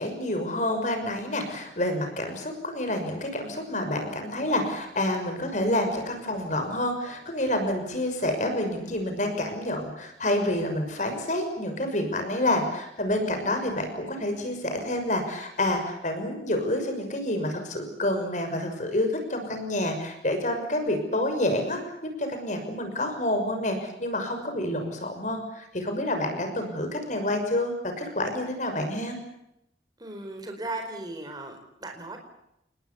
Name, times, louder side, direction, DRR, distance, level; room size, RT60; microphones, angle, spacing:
voice 1, 0.0-29.2, left 1 dB, 45° left, 5 dB, 6.2 m, -28 dB
voice 2, 30.0-32.2, right 2 dB, 25° right, 4 dB, 4.5 m, -37 dB
29.5 x 21.0 x 7.1 m, 0.83 s
head